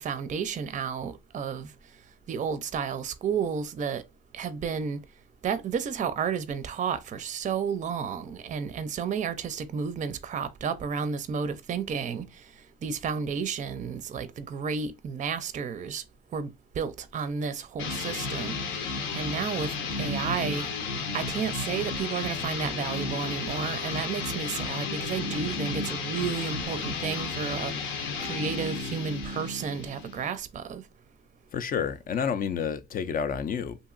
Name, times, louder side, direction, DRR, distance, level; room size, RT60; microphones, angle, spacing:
voice 1, 0.0-1.7 2.3-4.0 4.3-5.0 5.4-12.4 12.8-16.0 16.3-16.5 16.8-18.8 19.1-19.7 20.0-20.7 21.1-27.7 28.2-30.8, right 6 dB, 40° right, 0.4 m, -32 dB
sound 1, 17.8-30.3, left 4 dB, 80° left, 0.8 m, -33 dB
voice 2, 31.5-33.8, left 7 dB, 45° left, 0.4 m, -29 dB
2.8 x 2.6 x 2.4 m
cardioid pair, 90°, 20 cm